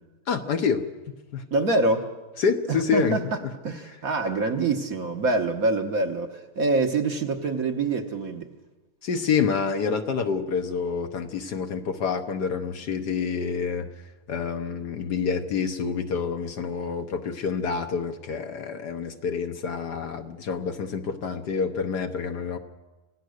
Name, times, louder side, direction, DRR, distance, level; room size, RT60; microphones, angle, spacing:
voice 1, 0.3-0.8 1.3-1.4 2.4-3.5 9.0-13.9 14.3-22.6, left 6 dB, 60° left, 7 dB, 1.4 m, -27 dB
voice 2, 1.5-2.1 2.7-3.2 3.6-8.5, right 3 dB, 50° right, 5 dB, 1.4 m, -25 dB
26.5 x 17.0 x 6.5 m, 1.2 s
omnidirectional pair, 2.3 m